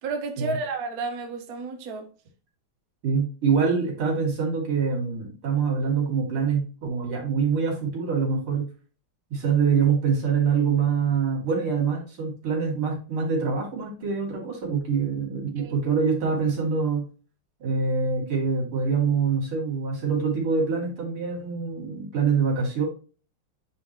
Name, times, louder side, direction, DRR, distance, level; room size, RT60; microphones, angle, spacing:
voice 1, 0.0-2.1 15.6-15.7, right 3 dB, 55° right, 1.3 m, -31 dB
voice 2, 3.0-8.7 9.3-17.1 17.6-22.9, right 5 dB, 85° right, 3.6 m, -25 dB
9.2 x 3.8 x 3.1 m
omnidirectional pair, 2.3 m